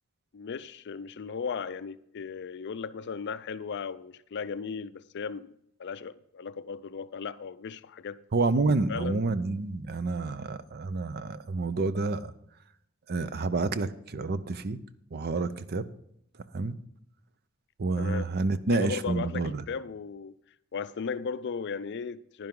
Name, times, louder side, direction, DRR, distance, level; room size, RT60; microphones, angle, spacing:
voice 1, 0.3-5.5 5.8-8.2 8.9-9.2 18.0-18.3 18.7-20.3 20.7-22.5, left 5 dB, 55° left, 0.4 m, -36 dB
voice 2, 8.3-12.3 13.1-14.8 15.1-15.9 16.5-16.8 17.8-19.6, right 3 dB, 45° right, 0.6 m, -29 dB
10.5 x 10.5 x 3.8 m
head